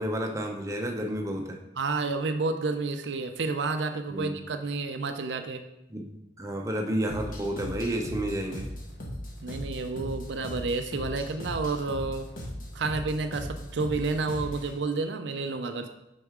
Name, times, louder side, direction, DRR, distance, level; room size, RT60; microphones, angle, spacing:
voice 1, 0.0-1.6 4.1-4.3 5.9-6.1 6.4-8.7, right 1 dB, 15° right, 2 dB, 0.6 m, -30 dB
voice 2, 1.8-5.6 9.4-12.3 12.7-15.9, right 3 dB, 70° right, 7 dB, 0.5 m, -30 dB
sound 1, 7.1-14.8, equal, 50° left, 1.1 m, -38 dB
6.0 x 4.5 x 3.7 m, 0.88 s
head